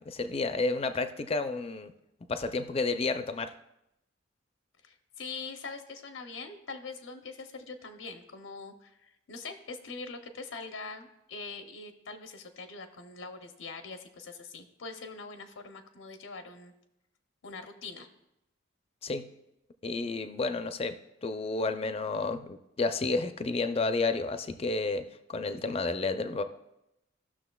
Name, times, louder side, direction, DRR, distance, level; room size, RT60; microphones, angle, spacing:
voice 1, 0.1-1.9 2.3-3.5 19.0-19.3 19.8-26.4, left 3 dB, 30° left, 10 dB, 0.4 m, -31 dB
voice 2, 4.8-16.7 17.4-18.1, left 4 dB, 85° left, 7 dB, 0.7 m, -43 dB
14.5 x 6.3 x 2.3 m, 0.86 s
head